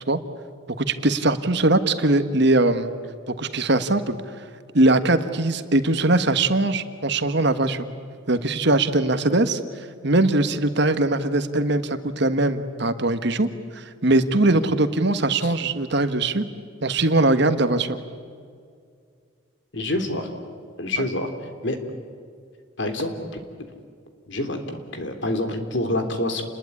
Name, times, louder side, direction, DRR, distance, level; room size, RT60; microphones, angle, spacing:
voice 1, 0.8-2.9 3.3-4.4 4.7-7.9 8.3-16.4 16.8-18.0, right 2 dB, 60° right, 10 dB, 1.5 m, -21 dB
voice 2, 19.7-20.3 20.8-21.3 21.6-21.8 22.8-23.1 24.3-26.4, left 1 dB, 60° left, 6 dB, 3.2 m, -27 dB
29.0 x 21.0 x 9.9 m, 2.2 s
head